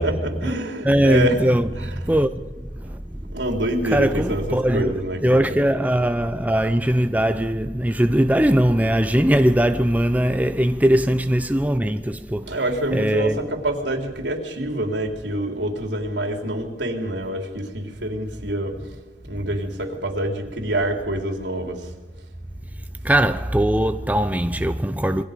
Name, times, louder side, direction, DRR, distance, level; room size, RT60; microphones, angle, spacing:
voice 1, 0.0-2.1 3.3-5.6 12.4-18.8 19.3-21.8, right 1 dB, 85° right, 3.6 m, -26 dB
voice 2, 0.8-3.3 3.9-12.6 12.9-13.4 23.0-25.2, right 1 dB, 10° right, 0.6 m, -20 dB
27.5 x 22.5 x 5.2 m
head